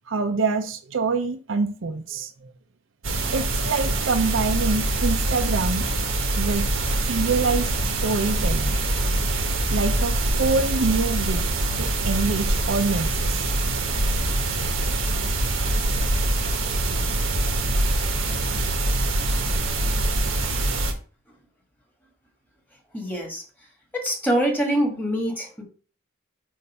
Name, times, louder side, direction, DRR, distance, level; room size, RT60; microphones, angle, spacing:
voice 1, 0.1-2.5 3.3-5.9 6.4-6.7 7.0-8.8 9.7-11.5 11.8-13.5, right 4 dB, 70° right, 7 dB, 0.6 m, -25 dB
sound 1, 3.0-20.9, right 2 dB, 90° right, 1.3 m, -24 dB
voice 2, 22.9-23.4 23.9-25.6, equal, 10° left, 0 dB, 1.6 m, -24 dB
6.5 x 2.6 x 5.4 m, 0.39 s
head